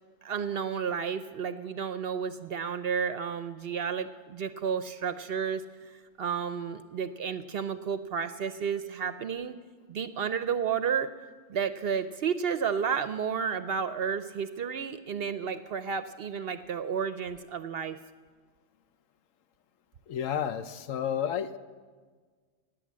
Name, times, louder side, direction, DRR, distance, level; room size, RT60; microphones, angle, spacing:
voice 1, 0.2-5.9 6.2-9.6 9.9-11.1 11.5-18.0, right 7 dB, 60° right, 12 dB, 0.7 m, -32 dB
voice 2, 20.1-21.6, left 9 dB, 80° left, 12 dB, 1.1 m, -31 dB
18.0 x 9.2 x 7.4 m, 1.5 s
omnidirectional pair, 1.4 m